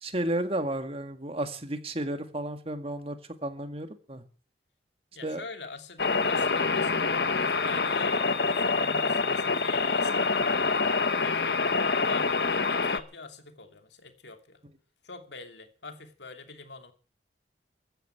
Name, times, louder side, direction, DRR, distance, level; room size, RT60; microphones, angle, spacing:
voice 1, 0.0-4.2 5.2-5.4, right 1 dB, 35° right, 8 dB, 2.0 m, -32 dB
voice 2, 5.1-7.1 7.4-11.5 12.1-14.6 15.0-16.9, left 4 dB, 80° left, 6 dB, 2.7 m, -44 dB
sound 1, 6.0-13.0, left 4 dB, 65° left, 1.2 m, -26 dB
15.0 x 10.5 x 8.9 m, 0.40 s
head